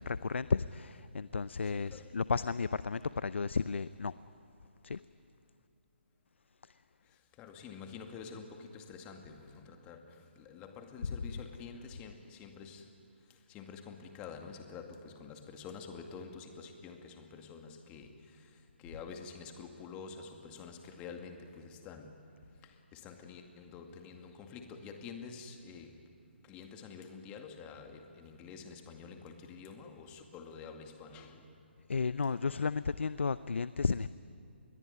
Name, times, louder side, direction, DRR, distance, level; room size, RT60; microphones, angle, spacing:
voice 1, 0.0-4.1 4.8-5.0 6.6-6.7 31.9-34.1, left 5 dB, 75° left, 16 dB, 0.6 m, -33 dB
voice 2, 1.6-2.2 7.0-12.9 13.3-26.1 26.4-31.5, left 5 dB, 20° left, 5 dB, 2.2 m, -48 dB
27.0 x 21.5 x 9.7 m, 2.5 s
figure-of-eight pair, 145°, 6 cm